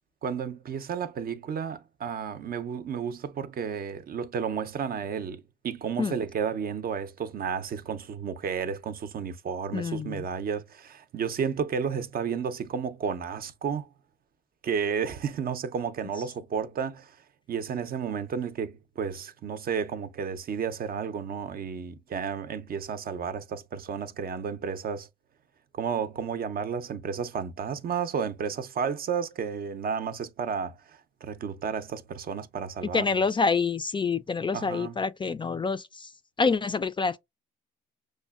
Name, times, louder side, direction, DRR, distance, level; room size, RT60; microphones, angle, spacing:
voice 1, 0.2-13.9 14.6-17.1 17.5-25.1 25.7-33.2 34.5-35.0, right 6 dB, 50° right, 0.5 m, -32 dB
voice 2, 9.7-10.2 32.9-36.1 36.4-37.2, left 4 dB, 25° left, 0.3 m, -27 dB
6.2 x 2.1 x 2.3 m
cardioid pair, 90°, 20 cm